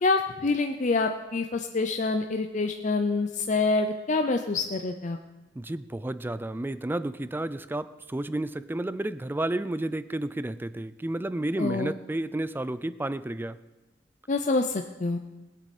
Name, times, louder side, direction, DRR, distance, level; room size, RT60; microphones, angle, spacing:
voice 1, 0.0-5.2 11.6-11.9 14.3-15.2, left 3 dB, 40° left, 5 dB, 0.5 m, -26 dB
voice 2, 5.6-13.6, right 1 dB, 10° right, 15 dB, 0.3 m, -31 dB
20.5 x 8.3 x 4.2 m, 1.2 s
head